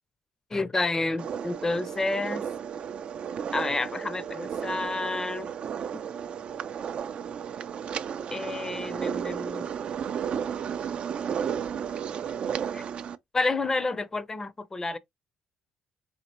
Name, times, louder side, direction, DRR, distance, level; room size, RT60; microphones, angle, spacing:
voice 1, 0.5-2.4 3.5-5.5 8.3-9.7 12.7-12.8 13.3-15.0, left 3 dB, 20° left, 0.5 m, -29 dB
sound 1, 1.2-13.2, right 8 dB, 55° right, 0.4 m, -33 dB
4.1 x 2.8 x 2.9 m
supercardioid pair, 80°, 2 cm